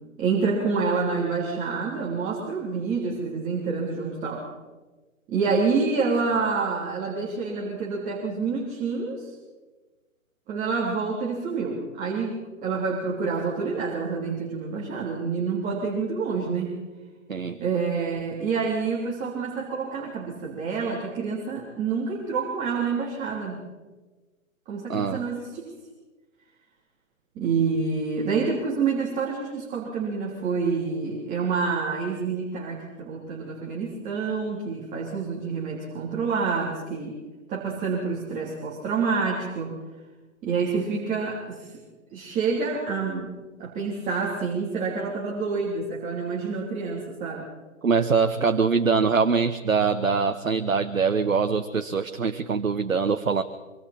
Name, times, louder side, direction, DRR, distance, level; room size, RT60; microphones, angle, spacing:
voice 1, 0.2-4.5 5.3-9.4 10.5-16.8 17.6-23.6 24.7-25.7 27.3-37.2 37.5-39.7 40.4-41.8 42.1-43.3 43.6-47.4, right 5 dB, 20° right, -4 dB, 3.4 m, -27 dB
voice 2, 24.9-25.2 47.8-53.4, right 5 dB, 85° right, 8 dB, 1.1 m, -23 dB
25.5 x 24.5 x 4.4 m, 1.2 s
figure-of-eight pair, 135°, 40 cm